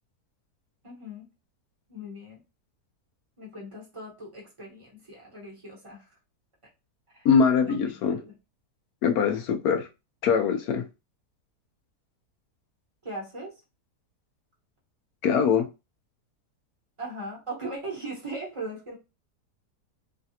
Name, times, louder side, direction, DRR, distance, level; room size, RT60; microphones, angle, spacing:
voice 1, 0.8-1.3 1.9-2.4 3.4-6.0 7.1-7.3 7.9-8.3 13.0-13.5 17.0-19.0, right 1 dB, 20° right, 1.0 m, -39 dB
voice 2, 7.2-8.2 9.0-9.9 10.2-10.8 15.2-15.7, left 6 dB, 75° left, 1.0 m, -22 dB
3.2 x 2.4 x 2.7 m
omnidirectional pair, 1.7 m